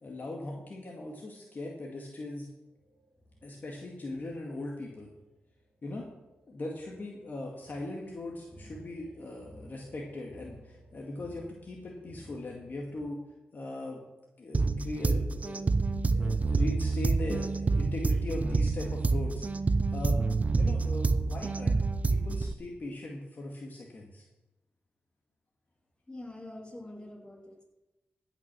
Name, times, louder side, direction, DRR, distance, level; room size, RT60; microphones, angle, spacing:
voice 1, 0.0-2.5 3.4-5.1 5.8-6.1 6.5-13.2 13.5-14.0 14.4-15.7 16.1-19.4 19.9-20.2 20.6-21.8 22.1-24.2, left 2 dB, 45° left, -1 dB, 1.9 m, -39 dB
sound 1, 2.7-13.1, right 1 dB, 5° right, 2.2 m, -55 dB
sound 2, 14.5-22.5, right 3 dB, 35° right, 0.6 m, -28 dB
voice 2, 26.1-27.6, left 1 dB, 20° left, -1 dB, 3.2 m, -45 dB
16.0 x 6.1 x 6.2 m, 0.98 s
cardioid pair, 75°, 4 cm